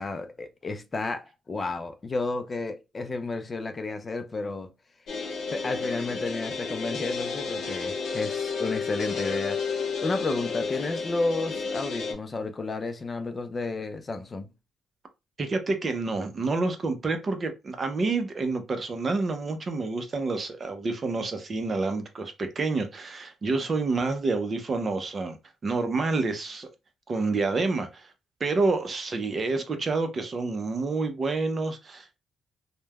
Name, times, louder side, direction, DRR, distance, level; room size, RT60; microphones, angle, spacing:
voice 1, 0.0-4.7 5.5-14.5, left 3 dB, 30° left, 0.4 m, -32 dB
sound 1, 5.1-12.1, left 5 dB, 70° left, 0.8 m, -31 dB
voice 2, 15.4-25.4 25.6-26.7 27.1-28.1 28.4-32.2, right 3 dB, 40° right, 0.6 m, -28 dB
3.2 x 2.1 x 2.2 m
cardioid pair, 90°, 0 cm